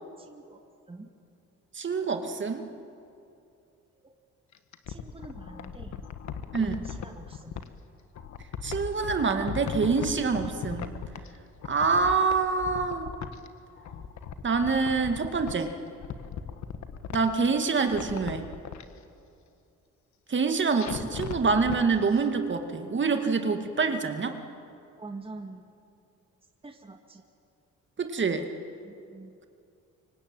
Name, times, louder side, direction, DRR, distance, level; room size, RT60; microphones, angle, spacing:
voice 1, 0.2-0.6 0.9-1.1 4.0-4.1 4.9-6.0 6.6-7.6 25.0-25.7 26.6-27.2 28.8-29.4, right 3 dB, 20° right, 4 dB, 1.9 m, -45 dB
voice 2, 1.7-2.7 6.5-6.8 8.6-10.9 11.7-13.1 14.4-15.7 17.1-18.5 20.3-24.4 28.0-28.5, right 4 dB, 40° right, 6 dB, 2.2 m, -26 dB
sound 1, 4.5-7.7 8.1-11.4 11.6-13.5 13.8-15.6 16.0-17.5 17.8-18.8 20.8-21.8 22.1-22.2, left 7 dB, 70° left, 1.6 m, -38 dB
25.0 x 23.5 x 9.0 m, 2.5 s
cardioid pair, 90°, 30 cm